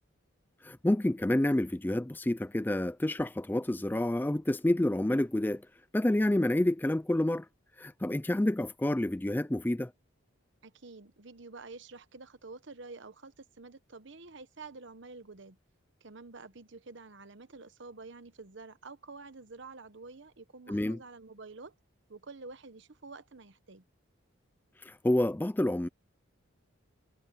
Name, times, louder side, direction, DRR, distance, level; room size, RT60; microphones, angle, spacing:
voice 1, 0.6-5.7 5.9-7.5 7.8-9.9 20.7-21.0 24.8-25.9, left 1 dB, 10° left, 0.3 m, -28 dB
voice 2, 10.6-15.6 16.0-21.7 22.1-23.8, right 3 dB, 60° right, 1.0 m, -48 dB
head